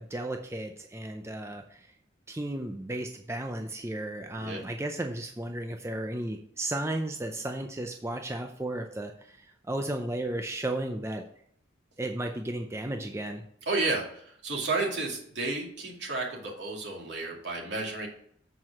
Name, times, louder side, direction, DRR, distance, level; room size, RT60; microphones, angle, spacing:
voice 1, 0.0-1.9 2.3-11.2 12.0-13.4, right 1 dB, 15° right, 4 dB, 0.5 m, -34 dB
voice 2, 13.7-18.1, right 3 dB, 65° right, -1 dB, 2.4 m, -32 dB
7.6 x 4.7 x 5.8 m, 0.66 s
head